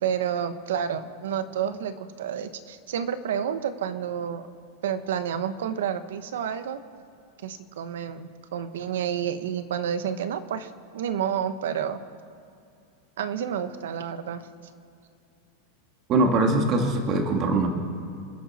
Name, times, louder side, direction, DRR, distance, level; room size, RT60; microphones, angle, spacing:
voice 1, 0.0-4.5 4.8-6.8 7.4-12.0 13.2-14.4, right 8 dB, 90° right, 11 dB, 1.1 m, -30 dB
voice 2, 16.1-17.7, right 2 dB, 30° right, 3 dB, 1.9 m, -22 dB
28.0 x 10.5 x 4.3 m, 2.6 s
supercardioid pair, 165°, 0 cm